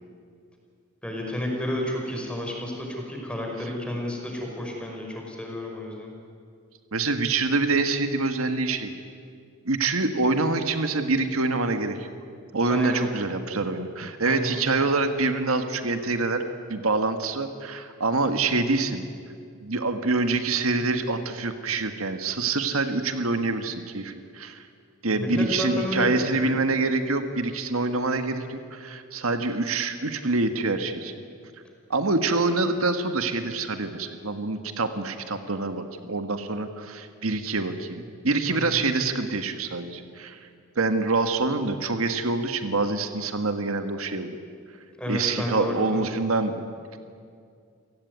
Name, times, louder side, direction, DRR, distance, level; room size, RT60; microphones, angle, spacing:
voice 1, 1.0-6.1 12.7-13.0 14.2-14.6 25.1-26.5 38.5-38.8 45.0-46.0, left 1 dB, 5° left, 0 dB, 5.3 m, -31 dB
voice 2, 6.9-8.9 9.6-12.1 12.5-16.4 16.7-19.0 19.6-24.6 25.0-31.1 31.9-40.4 40.7-44.4 45.1-47.0, right 3 dB, 85° right, 8 dB, 1.7 m, -26 dB
29.0 x 17.5 x 9.5 m, 2.3 s
head